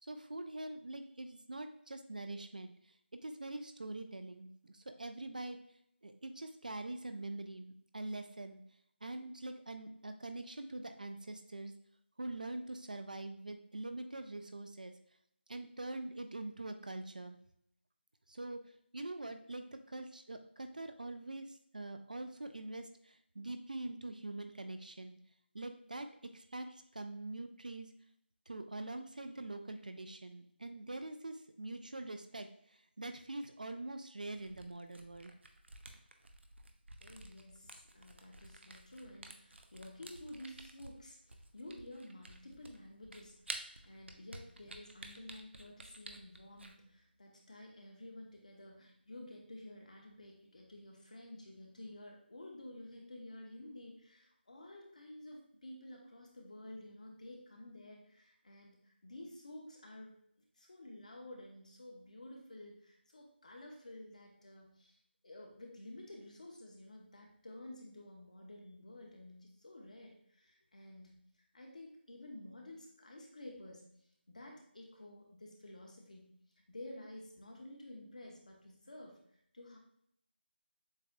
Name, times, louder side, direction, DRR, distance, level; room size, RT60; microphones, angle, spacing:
voice 1, 0.0-2.7 3.2-5.6 6.0-8.6 9.0-11.7 12.2-14.9 15.5-17.4 18.3-18.6 18.9-25.2 25.5-26.1 26.3-27.9 28.5-35.3, right 2 dB, 45° right, 8 dB, 0.4 m, -44 dB
Camera, 34.3-46.7, right 2 dB, 85° right, 0.7 m, -51 dB
voice 2, 37.0-60.2 60.6-65.0 65.2-71.2 71.5-73.9 74.3-76.3 76.7-79.2 79.5-79.8, left 1 dB, 40° left, 0 dB, 0.9 m, -52 dB
7.1 x 2.7 x 2.2 m, 0.70 s
figure-of-eight pair, 180°, 6 cm